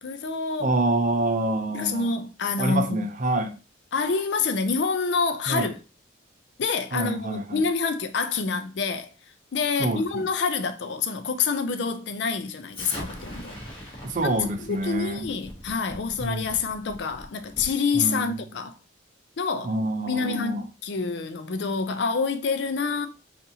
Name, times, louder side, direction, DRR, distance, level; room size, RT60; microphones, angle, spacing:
voice 1, 0.0-0.7 1.7-3.1 3.9-5.8 6.6-9.1 9.5-18.8 19.4-19.8 20.1-23.1, left 4 dB, 65° left, 0.4 m, -27 dB
voice 2, 0.6-2.1 2.6-3.5 5.5-5.7 6.9-7.6 9.8-10.2 14.0-15.3 16.2-16.5 17.9-18.4 19.6-20.6, right 2 dB, 40° right, 0.5 m, -26 dB
Explosion, 12.7-17.8, equal, 25° left, 1.0 m, -41 dB
4.0 x 2.5 x 2.7 m
head